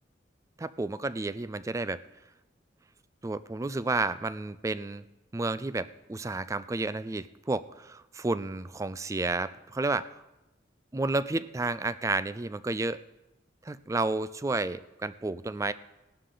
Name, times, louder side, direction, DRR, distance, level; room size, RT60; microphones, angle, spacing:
voice 1, 0.6-2.0 3.2-5.0 5.3-10.1 10.9-13.0 13.6-15.7, right 3 dB, 15° right, 15 dB, 0.4 m, -31 dB
17.5 x 11.5 x 3.9 m, 0.98 s
head